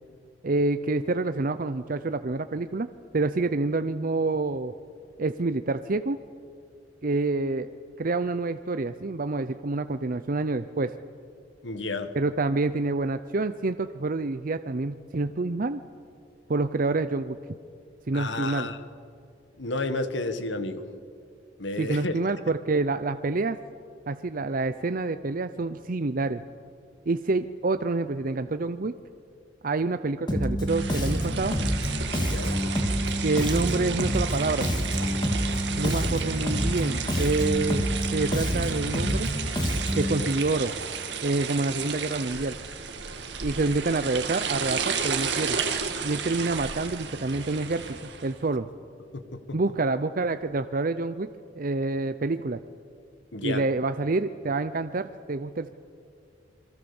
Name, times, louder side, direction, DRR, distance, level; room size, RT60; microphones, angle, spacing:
voice 1, 0.4-2.9 3.1-4.7 5.2-6.2 7.0-7.7 8.0-10.9 12.1-15.8 16.5-17.4 18.1-18.7 21.8-23.6 24.1-26.4 27.1-28.9 29.6-31.6 33.2-34.7 35.8-39.3 39.9-40.7 41.2-42.6 43.4-45.6 46.0-48.7 49.5-51.3 51.6-52.6 53.4-55.7, right 3 dB, 50° right, 10 dB, 0.6 m, -27 dB
voice 2, 11.6-12.1 18.1-18.8 19.6-20.8 21.6-22.1 32.1-32.6 40.2-40.3 49.1-49.6 53.3-53.6, left 2 dB, 80° left, 10 dB, 1.7 m, -31 dB
Bass guitar, 30.3-40.2, equal, 25° left, 2.6 m, -27 dB
sound 1, 30.7-48.4, right 6 dB, 70° right, 2.1 m, -33 dB
27.5 x 22.5 x 7.1 m, 2.4 s
head